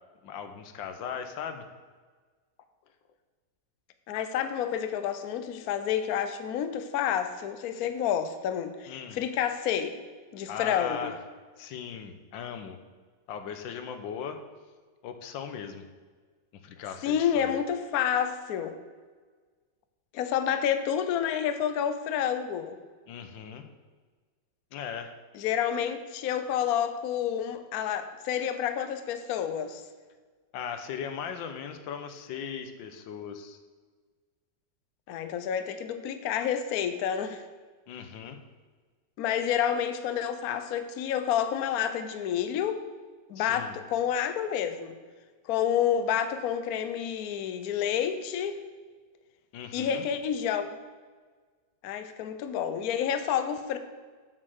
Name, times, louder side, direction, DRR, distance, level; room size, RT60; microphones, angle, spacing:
voice 1, 0.2-1.6 7.7-7.8 8.9-9.2 10.5-11.2 11.6-12.8 13.3-14.4 15.0-15.8 16.5-17.6 23.1-23.6 24.7-25.1 30.5-33.6 37.9-38.4 43.3-43.8 49.5-50.0, left 7 dB, 90° left, 8 dB, 1.6 m, -38 dB
voice 2, 4.1-10.0 10.3-11.1 17.0-18.8 20.1-22.8 25.3-29.8 35.1-37.4 39.2-42.8 43.3-44.9 45.5-48.5 49.7-50.8 51.8-53.8, left 9 dB, 65° left, 10 dB, 1.0 m, -29 dB
7.4 x 6.6 x 6.5 m, 1.5 s
omnidirectional pair, 2.0 m